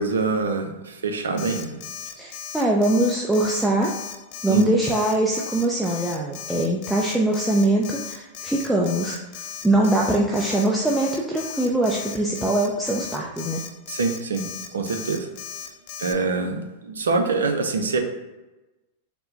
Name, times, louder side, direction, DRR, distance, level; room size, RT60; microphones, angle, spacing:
voice 1, 0.0-1.8 4.5-4.7 13.9-15.3 16.0-18.0, right 3 dB, 80° right, 5 dB, 0.6 m, -25 dB
Alarm, 1.4-16.1, left 9 dB, 55° left, 0.6 m, -36 dB
voice 2, 2.2-3.9 4.4-9.2 9.6-13.6, right 1 dB, 5° right, -3 dB, 0.5 m, -22 dB
4.4 x 2.1 x 3.9 m, 1.1 s
hypercardioid pair, 100°, 0 cm